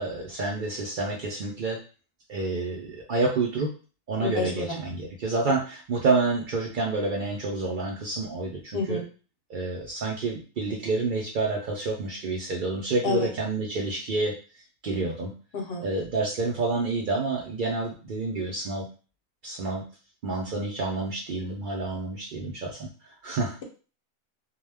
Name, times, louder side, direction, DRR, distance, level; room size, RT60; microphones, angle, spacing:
voice 1, 0.0-1.8 2.3-3.7 4.1-9.0 9.5-14.3 14.8-15.3 15.8-18.9 19.4-19.9 20.2-23.6, right 3 dB, 90° right, -1 dB, 0.4 m, -28 dB
voice 2, 4.2-4.6 8.7-9.0 13.0-13.3 15.5-15.8, left 4 dB, 55° left, 1 dB, 0.8 m, -28 dB
2.2 x 2.1 x 3.3 m, 0.35 s
omnidirectional pair, 1.4 m